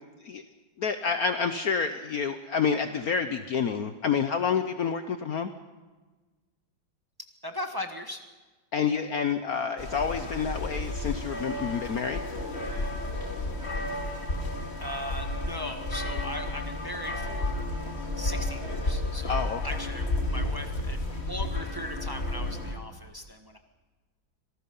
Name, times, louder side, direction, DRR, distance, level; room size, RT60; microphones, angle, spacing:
voice 1, 0.8-5.5 8.7-12.2 19.3-19.6, left 6 dB, 60° left, 8 dB, 1.1 m, -28 dB
voice 2, 7.4-8.2 14.8-17.6 18.2-23.6, left 1 dB, 15° right, 5 dB, 1.2 m, -38 dB
sound 1, 9.8-22.7, left 2 dB, 35° left, 2.4 m, -32 dB
25.5 x 19.0 x 5.5 m, 1.3 s
omnidirectional pair, 2.1 m